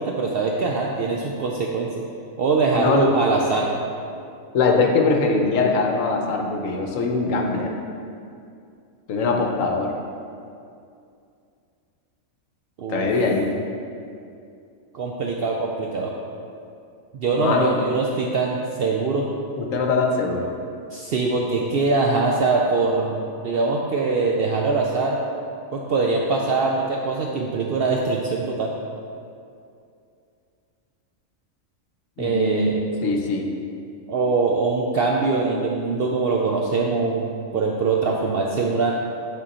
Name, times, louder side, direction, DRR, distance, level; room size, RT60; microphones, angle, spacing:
voice 1, 0.0-1.9 2.4-3.7 12.8-13.1 14.9-16.1 17.1-19.3 20.9-25.2 25.7-28.7 32.2-32.8 34.1-38.9, right 3 dB, 65° right, -1 dB, 0.6 m, -23 dB
voice 2, 2.7-3.1 4.5-7.8 9.1-9.9 12.9-13.5 17.3-17.8 19.6-20.5 32.2-33.5, left 3 dB, 70° left, 2 dB, 1.1 m, -22 dB
8.8 x 3.6 x 4.1 m, 2.5 s
omnidirectional pair, 1.5 m